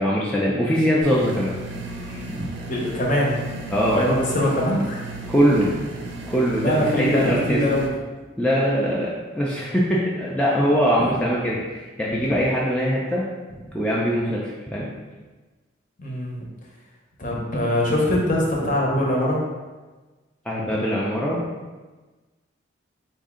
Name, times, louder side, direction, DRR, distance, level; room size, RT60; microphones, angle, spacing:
voice 1, 0.0-1.6 2.1-2.6 3.7-4.0 5.3-5.7 6.3-7.6 8.4-9.1 9.3-13.2 13.6-14.9 20.5-21.4, equal, 5° left, -6 dB, 0.4 m, -22 dB
sound 1, 1.0-7.9, right 2 dB, 60° right, 0.5 m, -35 dB
voice 2, 2.7-3.4 3.9-5.0 6.6-7.9 11.0-11.1 16.0-16.4 17.2-19.4, left 1 dB, 40° left, -3 dB, 0.9 m, -22 dB
4.1 x 2.7 x 3.7 m, 1.3 s
head